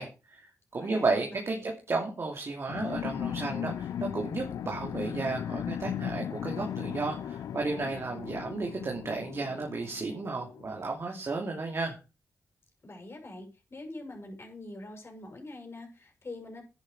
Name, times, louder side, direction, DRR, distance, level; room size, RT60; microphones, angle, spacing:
voice 1, 0.0-12.0, right 3 dB, 50° right, 1 dB, 2.5 m, -33 dB
voice 2, 0.7-1.3 1.5-1.7 12.8-16.6, left 2 dB, 45° left, 3 dB, 6.1 m, -44 dB
sound 1, 2.7-10.8, left 9 dB, 80° left, 0.4 m, -37 dB
10.5 x 9.6 x 4.8 m, 0.31 s
cardioid pair, 50°, 6 cm